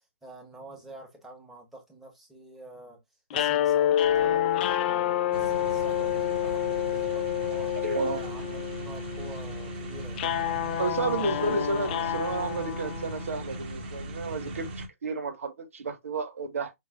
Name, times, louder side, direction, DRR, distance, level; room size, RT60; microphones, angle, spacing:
voice 1, 0.0-3.0 3.3-7.8 8.1-10.3, right 1 dB, 5° right, 1.7 m, -47 dB
sound 1, 3.3-13.5, left 11 dB, 40° left, 0.5 m, -28 dB
sound 2, 5.3-14.9, right 1 dB, 45° right, 1.8 m, -38 dB
voice 2, 7.8-8.2 10.8-16.7, right 3 dB, 70° right, 1.7 m, -31 dB
5.8 x 3.1 x 2.6 m
figure-of-eight pair, 130°, 8 cm